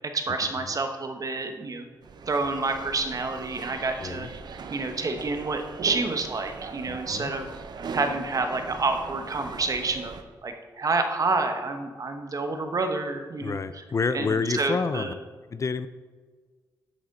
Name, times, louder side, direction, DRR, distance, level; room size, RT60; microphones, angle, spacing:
voice 1, 0.1-1.9 2.3-4.3 4.7-7.5 7.9-10.1 10.4-13.6 14.1-15.1, right 3 dB, 45° right, 6 dB, 1.0 m, -28 dB
sound 1, 2.0-10.2, right 5 dB, 60° right, 0.7 m, -39 dB
voice 2, 4.0-4.3 6.9-7.3 13.4-15.1 15.5-15.9, left 4 dB, 40° left, 13 dB, 0.4 m, -28 dB
7.6 x 7.5 x 4.1 m, 1.5 s
cardioid pair, 80°, 8 cm